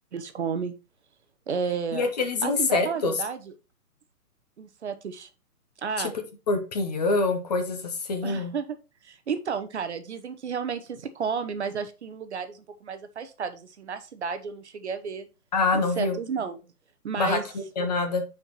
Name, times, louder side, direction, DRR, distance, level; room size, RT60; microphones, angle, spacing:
voice 1, 0.1-0.7 1.5-2.1 2.4-3.5 4.6-5.3 5.8-6.1 8.2-8.8 9.0-15.3 15.7-16.6 17.0-17.4, right 6 dB, 45° right, 9 dB, 0.8 m, -32 dB
voice 2, 1.9-3.1 6.0-6.1 6.5-8.5 15.5-16.2 17.2-17.4 17.8-18.2, left 3 dB, 25° left, 6 dB, 0.8 m, -25 dB
9.6 x 4.4 x 3.0 m, 0.30 s
hypercardioid pair, 145°, 46 cm